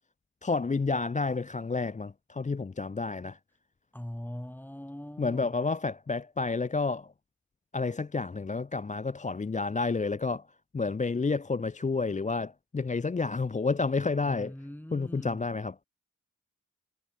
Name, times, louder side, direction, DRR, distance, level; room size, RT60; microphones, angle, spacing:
voice 1, 0.4-3.4 5.2-7.1 7.7-10.4 10.7-14.5 14.9-15.7, left 4 dB, 25° left, 0.6 m, -30 dB
voice 2, 3.9-5.6 14.2-15.5, left 1 dB, 5° left, 3.5 m, -41 dB
cardioid pair, 55°, 30 cm